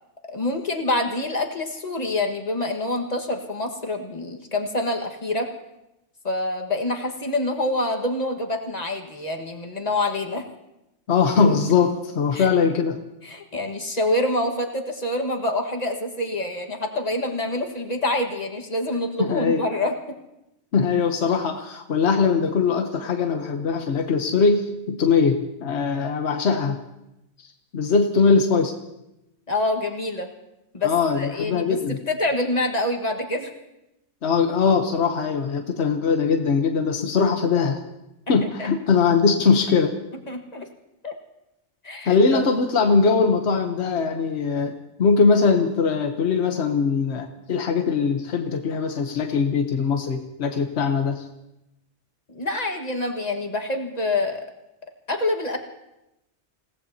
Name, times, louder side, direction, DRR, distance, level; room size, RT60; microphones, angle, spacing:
voice 1, 0.3-5.5 6.2-10.4 12.3-12.5 13.2-19.9 29.5-30.3 30.7-31.8 32.1-33.5 38.3-38.7 40.3-40.7 41.0-41.1 41.8-42.5 52.3-54.4 55.1-55.6, left 2 dB, 35° left, 2 dB, 1.7 m, -26 dB
voice 2, 11.1-13.0 19.2-19.6 20.7-26.8 27.7-28.8 30.8-32.0 34.2-37.8 38.3-39.9 42.0-51.2, left 5 dB, 70° left, 4 dB, 1.3 m, -21 dB
28.5 x 17.5 x 2.8 m, 0.90 s
omnidirectional pair, 1.2 m